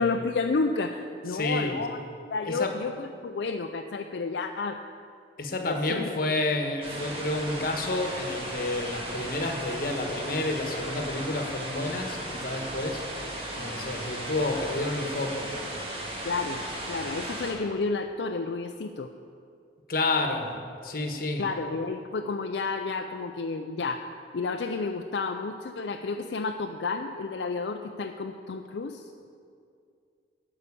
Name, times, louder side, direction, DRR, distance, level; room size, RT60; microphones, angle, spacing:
voice 1, 0.0-2.0 2.3-4.8 5.7-6.1 16.2-19.1 21.4-24.1 24.3-29.1, left 4 dB, 75° left, 4 dB, 0.4 m, -31 dB
voice 2, 1.3-1.8 2.4-2.8 5.4-13.0 13.3-15.5 19.9-20.6 20.8-21.5, left 2 dB, 50° left, 4 dB, 1.2 m, -30 dB
sound 1, 6.8-17.5, right 1 dB, 30° right, 1.8 m, -36 dB
12.0 x 5.7 x 8.4 m, 2.4 s
head